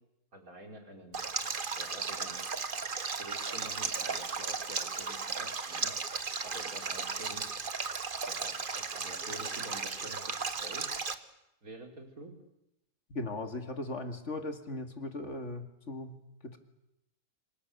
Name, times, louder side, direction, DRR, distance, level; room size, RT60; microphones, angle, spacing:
voice 1, 0.3-2.4 3.2-5.9 6.4-7.5 8.2-10.2 10.6-10.9 11.6-12.3, right 1 dB, 80° right, 3 dB, 4.5 m, -48 dB
Stream, 1.1-11.1, right 4 dB, 40° right, 1.3 m, -35 dB
voice 2, 13.1-16.6, left 2 dB, 55° left, 6 dB, 2.6 m, -38 dB
26.5 x 25.0 x 7.0 m, 0.86 s
omnidirectional pair, 1.5 m